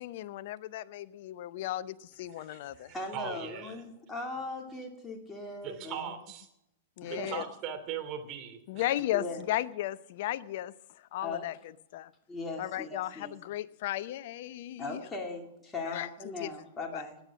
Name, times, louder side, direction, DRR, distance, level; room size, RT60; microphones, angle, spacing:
voice 1, 0.0-2.9 7.0-7.4 8.7-10.7 11.1-11.6 11.9-12.1 12.6-15.0 15.8-16.1 16.4-16.5 16.9-17.0, left 14 dB, 60° left, 17 dB, 0.7 m, -35 dB
voice 2, 2.4-3.8 5.6-6.5 7.1-8.8, right 8 dB, 40° right, 8 dB, 2.8 m, -40 dB
voice 3, 2.9-6.2 7.0-7.4 9.1-9.4 11.2-11.5 12.3-13.3 14.8-17.2, left 3 dB, 15° left, 0 dB, 2.6 m, -39 dB
18.5 x 9.3 x 6.2 m, 0.82 s
hypercardioid pair, 110°, 0 cm